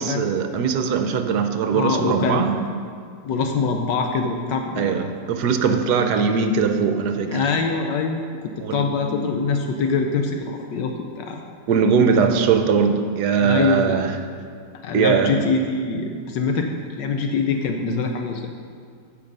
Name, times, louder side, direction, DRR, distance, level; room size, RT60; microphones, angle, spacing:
voice 1, 0.0-2.6 4.8-7.5 8.6-8.9 11.7-14.1 14.9-15.3, right 6 dB, 70° right, 7 dB, 1.2 m, -20 dB
voice 2, 1.7-2.5 3.2-5.1 7.3-8.3 8.7-11.4 12.2-12.3 13.4-14.0 14.8-18.5, left 4 dB, 75° left, 4 dB, 1.3 m, -24 dB
15.0 x 5.2 x 5.3 m, 2.2 s
omnidirectional pair, 2.0 m